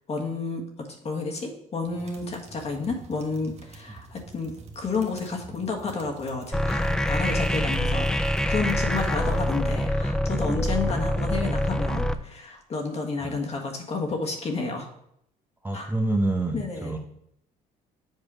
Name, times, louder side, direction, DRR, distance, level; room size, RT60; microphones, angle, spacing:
voice 1, 0.1-14.9 15.7-15.9 16.5-16.9, left 4 dB, 40° left, 2 dB, 1.5 m, -31 dB
sound 1, 1.9-9.9, right 4 dB, 40° right, 1.1 m, -47 dB
sound 2, 6.5-12.1, left 1 dB, 5° left, 0.4 m, -25 dB
voice 2, 15.6-17.0, right 2 dB, 10° right, 2 dB, 0.8 m, -28 dB
7.6 x 4.7 x 4.9 m, 0.75 s
cardioid pair, 110°, 17 cm